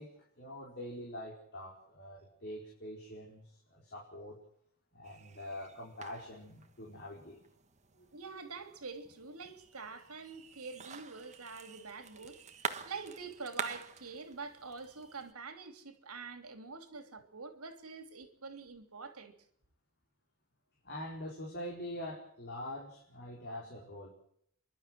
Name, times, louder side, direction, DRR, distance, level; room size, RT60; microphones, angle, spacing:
voice 1, 0.0-4.4 4.9-7.4 7.9-8.1 20.8-24.1, left 1 dB, 50° left, 4.7 m, -44 dB
sound 1, 5.0-15.3, right 6 dB, 30° right, 1.4 m, -47 dB
voice 2, 8.1-19.3, right 4 dB, 80° right, 3.0 m, -46 dB
29.5 x 12.5 x 7.8 m
head